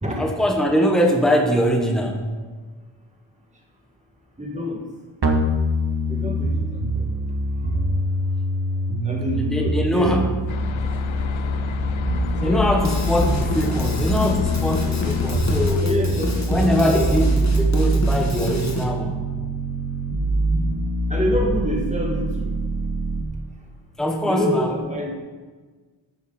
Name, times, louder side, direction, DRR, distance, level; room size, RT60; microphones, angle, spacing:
voice 1, 0.2-2.5 9.3-10.4 12.4-15.9 16.5-19.2 24.0-24.7, equal, ahead, 1 dB, 1.3 m, -22 dB
voice 2, 4.4-4.8 6.1-6.5 6.9-7.0 9.0-10.3 12.3-12.6 15.8-17.3 21.1-22.5 24.2-25.2, equal, 15° right, -1 dB, 2.3 m, -27 dB
sound 1, 5.2-23.2, right 1 dB, 55° right, 1.5 m, -24 dB
sound 2, 10.5-15.8, left 9 dB, 75° left, 0.6 m, -31 dB
Drum kit / Drum, 12.8-18.8, left 1 dB, 35° left, 1.9 m, -30 dB
12.5 x 8.1 x 4.4 m, 1.4 s
wide cardioid pair, 65°, 48 cm